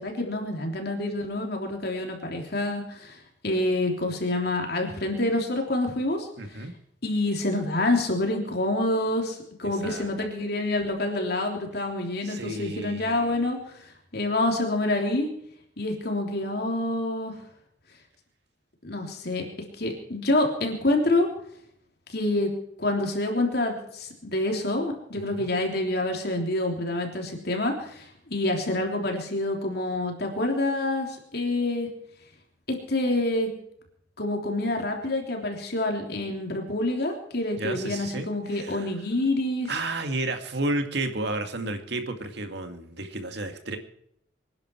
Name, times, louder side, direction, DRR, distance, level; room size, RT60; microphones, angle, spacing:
voice 1, 0.0-6.3 6.5-6.7 7.0-15.3 15.8-17.4 18.8-19.4 19.8-21.3 22.1-22.5 22.8-31.9 32.9-33.5 34.2-39.7, left 2 dB, 55° left, 2 dB, 3.3 m, -27 dB
voice 2, 6.4-6.7 9.7-10.1 12.2-13.3 25.1-25.4 37.5-38.9 39.7-43.8, right 2 dB, 60° right, 6 dB, 2.2 m, -32 dB
25.5 x 10.5 x 4.6 m, 0.71 s
head